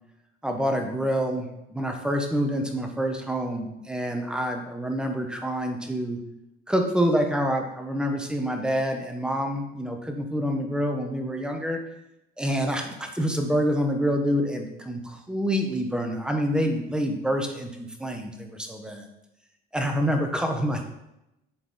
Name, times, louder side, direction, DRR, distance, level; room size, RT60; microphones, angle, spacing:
voice 1, 0.4-6.2 6.7-11.8 12.4-19.1 19.7-20.8, equal, 5° right, 3 dB, 0.8 m, -27 dB
7.8 x 4.0 x 3.9 m, 0.89 s
cardioid pair, 130°, 21 cm